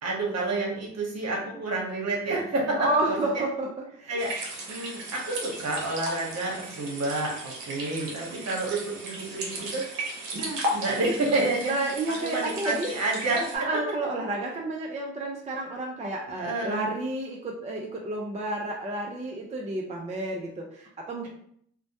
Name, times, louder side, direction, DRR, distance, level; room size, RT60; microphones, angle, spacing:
voice 1, 0.0-3.4 4.1-4.3 4.7-10.1 10.4-11.8 12.2-13.8 16.4-16.9, right 2 dB, 55° right, -2 dB, 1.0 m, -29 dB
voice 2, 2.8-4.2 11.6-12.9 13.5-21.3, right 2 dB, 20° right, 0 dB, 0.4 m, -31 dB
sound 1, 4.2-13.6, right 1 dB, 85° right, 0.7 m, -36 dB
2.1 x 2.0 x 2.8 m, 0.67 s
supercardioid pair, 55°, 32 cm